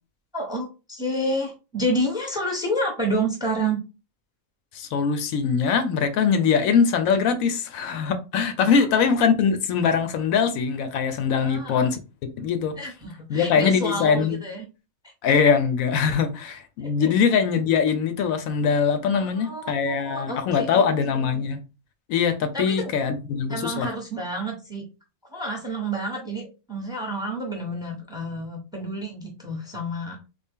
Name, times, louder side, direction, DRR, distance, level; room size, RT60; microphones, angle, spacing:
voice 1, 0.3-3.8 8.8-8.9 11.4-11.9 12.8-14.6 16.8-17.1 19.1-20.8 21.1-21.5 22.5-22.9 23.5-24.8 25.3-30.2, right 1 dB, 5° right, 0.7 m, -29 dB
voice 2, 4.7-12.0 12.4-12.7 13.3-14.4 15.2-21.6 22.1-23.9, left 6 dB, 80° left, 1.0 m, -22 dB
3.4 x 2.3 x 3.5 m
omnidirectional pair, 1.4 m